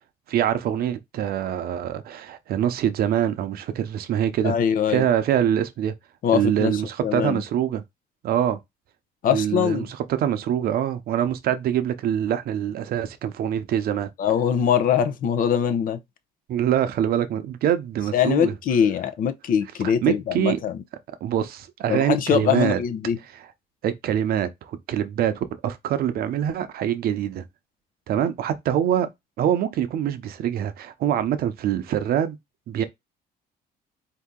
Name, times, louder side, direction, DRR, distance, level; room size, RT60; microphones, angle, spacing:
voice 1, 0.3-4.6 4.9-5.9 6.3-7.8 8.2-8.6 9.3-14.1 16.5-18.5 19.8-20.6 21.2-22.8 23.8-27.4 28.1-29.1 29.4-32.4 32.7-32.8, right 10 dB, 65° right, 0.7 m, -24 dB
voice 2, 4.4-5.1 6.2-7.4 9.2-9.9 14.2-16.0 18.1-20.8 21.9-23.2, left 8 dB, 55° left, 0.7 m, -22 dB
3.9 x 2.8 x 3.7 m
cardioid pair, 110°, 17 cm